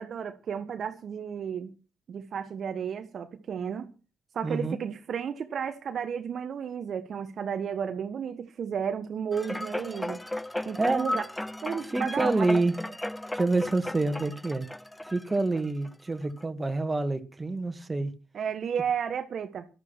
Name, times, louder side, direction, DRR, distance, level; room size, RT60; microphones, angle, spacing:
voice 1, 0.0-1.7 2.1-3.9 4.3-10.2 10.6-11.2 11.6-12.6 18.3-19.7, right 7 dB, 60° right, 1.5 m, -33 dB
voice 2, 4.4-4.8 10.8-11.1 11.9-12.7 13.3-14.7 15.0-18.1, right 3 dB, 25° right, 2.5 m, -27 dB
sound 1, 9.3-15.9 16.4-16.5, left 1 dB, 10° left, 0.7 m, -35 dB
12.5 x 12.0 x 6.3 m
hypercardioid pair, 45°, 0 cm